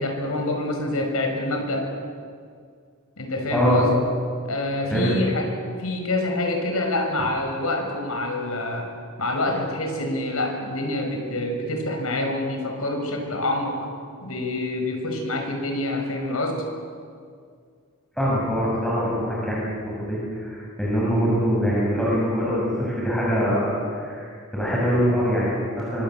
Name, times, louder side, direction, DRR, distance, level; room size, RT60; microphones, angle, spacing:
voice 1, 0.0-1.9 3.2-3.9 4.4-5.5 5.8-8.9 9.2-13.8 14.2-16.6, left 1 dB, 80° left, 3 dB, 5.6 m, -26 dB
voice 2, 3.5-3.8 4.9-5.1 18.2-26.0, equal, 5° left, -7 dB, 7.1 m, -23 dB
25.0 x 25.0 x 7.9 m, 2.1 s
head